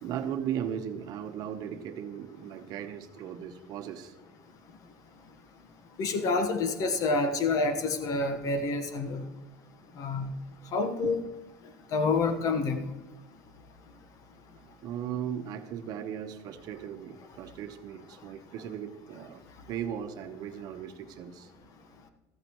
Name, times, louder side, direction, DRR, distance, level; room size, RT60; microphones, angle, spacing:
voice 1, 0.0-4.2 14.6-19.4 19.7-21.5, right 9 dB, 50° right, 8 dB, 1.0 m, -37 dB
voice 2, 6.0-9.2 10.0-10.3 10.7-11.2 11.9-12.8, left 3 dB, 45° left, 8 dB, 1.2 m, -28 dB
14.5 x 14.0 x 3.1 m, 1.1 s
cardioid pair, 145°, 8 cm